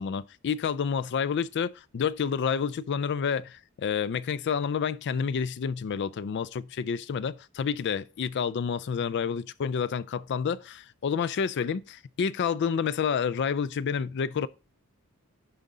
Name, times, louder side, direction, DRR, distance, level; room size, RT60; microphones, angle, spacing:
voice 1, 0.0-14.5, left 6 dB, 50° left, 0.3 m, -29 dB
10.5 x 3.7 x 3.9 m
head